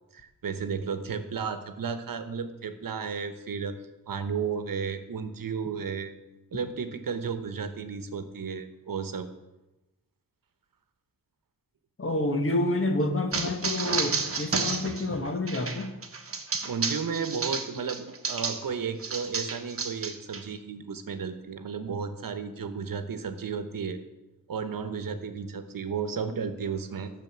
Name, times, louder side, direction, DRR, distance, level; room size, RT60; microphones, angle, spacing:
voice 1, 0.1-3.7 4.1-6.1 6.5-9.3 16.6-24.0 24.5-27.1, right 6 dB, 70° right, 9 dB, 1.1 m, -33 dB
voice 2, 12.0-15.9, left 2 dB, 40° left, 5 dB, 1.4 m, -28 dB
sound 1, 13.3-18.7 19.0-20.4, right 4 dB, 40° right, 1.2 m, -31 dB
12.5 x 6.6 x 7.3 m, 1.0 s
wide cardioid pair, 155°, 35 cm